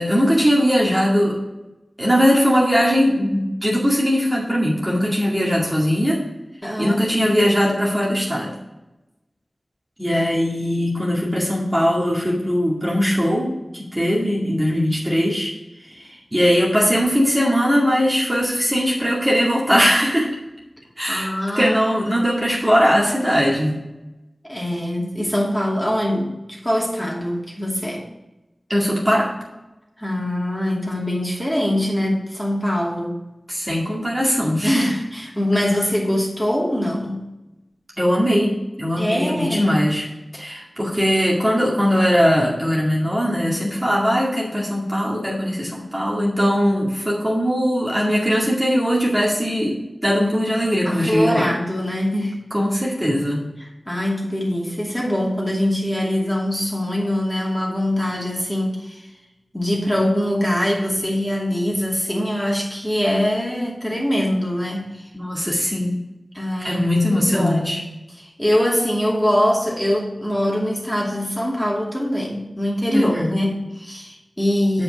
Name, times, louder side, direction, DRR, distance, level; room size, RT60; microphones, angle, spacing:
voice 1, 0.0-1.4 2.0-6.2 6.8-8.5 10.0-15.5 15.8-20.4 21.0-23.7 28.7-29.3 33.5-34.9 38.0-40.1 40.3-51.5 52.5-53.4 65.1-66.0 66.6-67.8 72.9-73.4 74.7-74.8, equal, 15° right, -5 dB, 2.2 m, -20 dB
voice 2, 6.6-7.0 21.1-21.9 24.4-28.0 30.0-33.3 34.6-37.2 39.0-39.8 50.8-52.4 53.6-59.1 59.5-65.1 66.3-66.8 67.1-67.9 68.2-74.8, left 1 dB, 10° left, -3 dB, 2.6 m, -23 dB
7.7 x 5.4 x 5.9 m, 0.99 s
wide cardioid pair, 45°, 0 cm